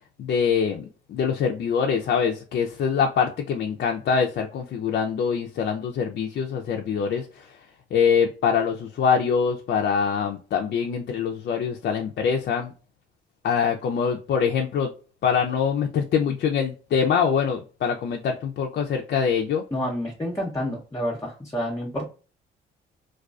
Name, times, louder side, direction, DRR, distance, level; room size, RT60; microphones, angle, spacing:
voice 1, 0.2-7.5 7.9-12.7 13.4-14.9 15.2-19.6, left 6 dB, 55° left, 2 dB, 0.4 m, -24 dB
voice 2, 19.7-22.1, equal, 15° left, -2 dB, 0.6 m, -29 dB
2.3 x 2.3 x 2.3 m, 0.37 s
cardioid pair, 90°, 20 cm